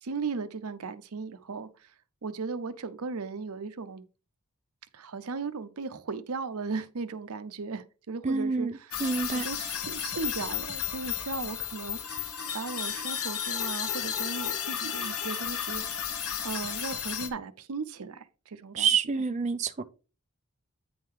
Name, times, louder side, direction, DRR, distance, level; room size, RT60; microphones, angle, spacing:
voice 1, 0.0-1.9 2.2-4.0 4.9-9.0 9.3-15.8 16.4-18.9 19.1-19.2, right 4 dB, 75° right, 0.7 m, -37 dB
voice 2, 8.2-8.7 9.0-9.5 18.8-19.8, right 5 dB, 30° right, 0.5 m, -27 dB
sound 1, 8.9-17.3, left 9 dB, 70° left, 1.1 m, -33 dB
9.4 x 3.7 x 4.6 m
head